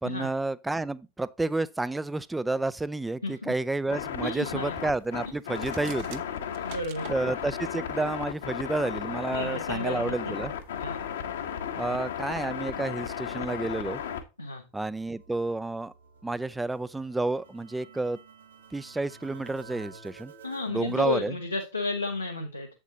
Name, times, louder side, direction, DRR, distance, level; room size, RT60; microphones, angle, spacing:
voice 1, 0.0-6.2 7.1-10.5 11.8-14.0 14.7-15.9 16.2-18.2 18.7-20.3 20.7-21.3, right 2 dB, 5° right, 0.4 m, -30 dB
voice 2, 3.2-3.5 4.2-4.7 6.5-7.2 9.3-10.3 10.8-11.0 14.4-14.6 20.4-22.7, left 2 dB, 85° left, 1.2 m, -32 dB
sound 1, 3.9-14.2, left 8 dB, 60° left, 1.2 m, -35 dB
sound 2, 5.5-7.2, right 12 dB, 50° right, 0.8 m, -46 dB
sound 3, 14.7-21.3, right 4 dB, 70° right, 1.6 m, -52 dB
8.3 x 7.4 x 2.8 m
figure-of-eight pair, 90°, 0 cm